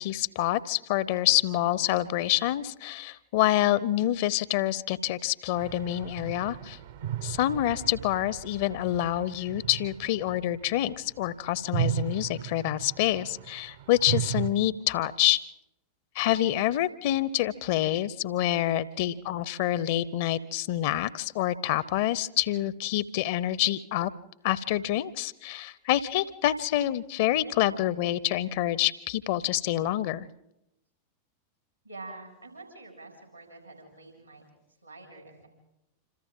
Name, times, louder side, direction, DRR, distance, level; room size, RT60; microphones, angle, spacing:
voice 1, 0.0-6.8 7.2-15.4 16.1-24.1 24.4-30.3, left 13 dB, 50° left, 20 dB, 0.7 m, -27 dB
sound 1, 5.6-11.2 11.5-14.5, right 11 dB, 60° right, 0.9 m, -35 dB
voice 2, 31.8-34.4 34.8-35.5, right 2 dB, 90° right, 1 dB, 6.6 m, -46 dB
27.0 x 26.5 x 3.8 m, 0.89 s
figure-of-eight pair, 90°, 0 cm